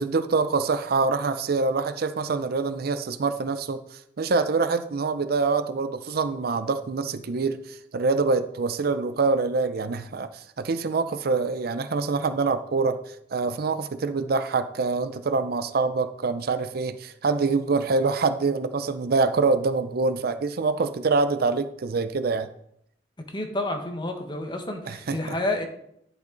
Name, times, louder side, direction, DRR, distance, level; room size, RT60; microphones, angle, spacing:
voice 1, 0.0-22.5 24.9-25.4, right 4 dB, 60° right, 11 dB, 0.5 m, -25 dB
voice 2, 23.3-25.7, left 1 dB, 25° left, 4 dB, 1.2 m, -29 dB
10.5 x 5.9 x 3.9 m, 0.74 s
head